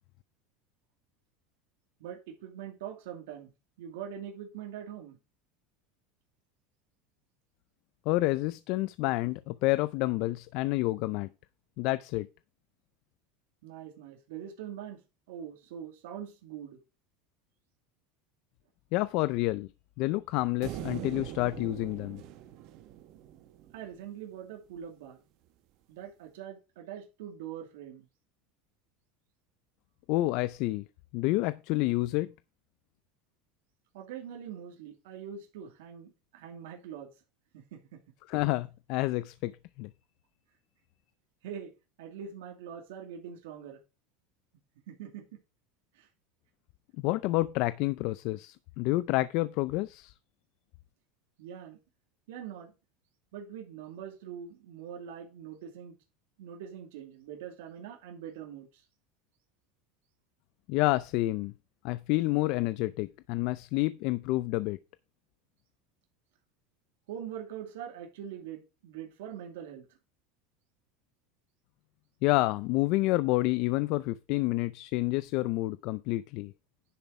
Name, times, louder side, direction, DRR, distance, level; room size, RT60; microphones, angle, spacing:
voice 1, 2.0-3.5 3.8-5.2 13.6-15.0 15.3-16.8 23.7-25.2 25.9-28.1 33.9-37.1 37.5-38.0 41.4-41.7 42.0-43.8 44.9-45.3 45.9-46.1 51.4-51.8 52.3-52.7 53.3-56.0 56.4-58.8 67.1-70.0, right 9 dB, 85° right, 2.5 m, -43 dB
voice 2, 8.1-11.3 11.8-12.3 18.9-19.7 20.0-22.2 30.1-30.8 31.1-32.3 38.3-39.5 39.8-39.9 47.0-50.1 60.7-61.5 61.8-64.8 72.2-76.5, left 19 dB, 55° left, 0.5 m, -29 dB
sound 1, 20.6-24.0, right 13 dB, 55° right, 1.1 m, -42 dB
10.5 x 6.9 x 4.7 m
supercardioid pair, 145°, 0 cm